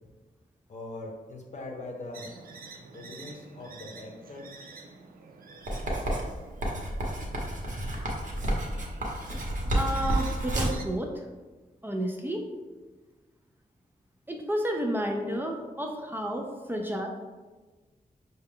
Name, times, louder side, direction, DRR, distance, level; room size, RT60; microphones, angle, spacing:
voice 1, 0.7-2.3 2.9-4.7, left 2 dB, 55° left, 1 dB, 0.7 m, -41 dB
sound 1, 2.1-10.8, right 4 dB, 85° right, 0.5 m, -49 dB
Writing, 5.7-10.9, right 1 dB, 60° right, 0.9 m, -30 dB
voice 2, 9.7-11.1 11.8-12.4 14.3-17.1, right 1 dB, 15° right, 1 dB, 0.4 m, -31 dB
5.7 x 2.2 x 3.6 m, 1.3 s
wide cardioid pair, 160°, 15 cm